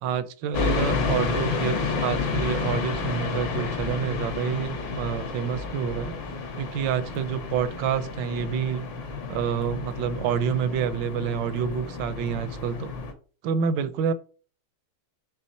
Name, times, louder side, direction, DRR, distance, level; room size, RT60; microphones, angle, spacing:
voice 1, 0.0-6.2 6.6-8.8 9.3-12.9 13.4-14.1, right 7 dB, 70° right, 13 dB, 1.2 m, -28 dB
sound 1, 0.5-13.1, left 4 dB, 60° left, 1.8 m, -30 dB
6.3 x 3.5 x 5.4 m, 0.39 s
omnidirectional pair, 2.3 m